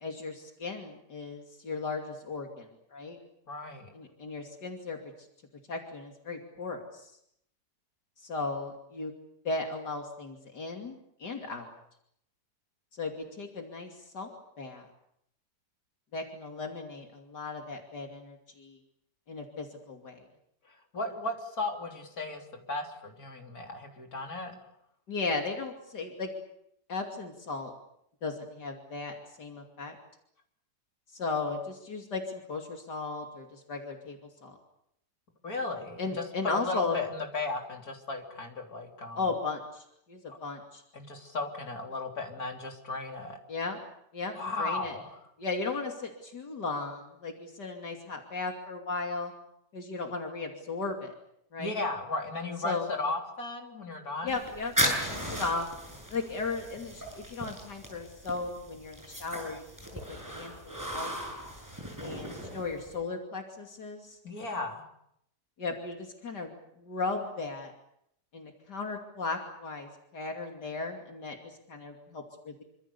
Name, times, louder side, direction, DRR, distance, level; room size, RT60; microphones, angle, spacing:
voice 1, 0.0-3.2 3.9-5.0 5.7-7.2 8.2-9.1 9.4-11.7 12.9-14.9 16.1-18.8 19.3-20.2 25.1-26.3 26.9-27.7 28.2-30.0 31.1-34.6 36.0-37.0 39.2-40.8 43.5-43.8 44.1-44.9 45.4-49.3 49.7-51.1 51.5-51.8 52.6-52.9 54.2-55.7 56.1-59.6 60.1-61.2 62.0-64.2 65.6-67.7 68.3-72.6, left 3 dB, 80° left, 2 dB, 3.3 m, -36 dB
voice 2, 3.5-3.9 20.7-24.5 35.4-36.1 36.5-39.2 40.3-40.4 40.9-43.4 44.3-45.2 51.6-54.4 64.2-64.9, left 2 dB, 60° left, 2 dB, 4.0 m, -35 dB
sound 1, 54.3-63.0, equal, 10° right, 8.0 m, -36 dB
27.0 x 26.0 x 6.9 m, 0.74 s
omnidirectional pair, 1.8 m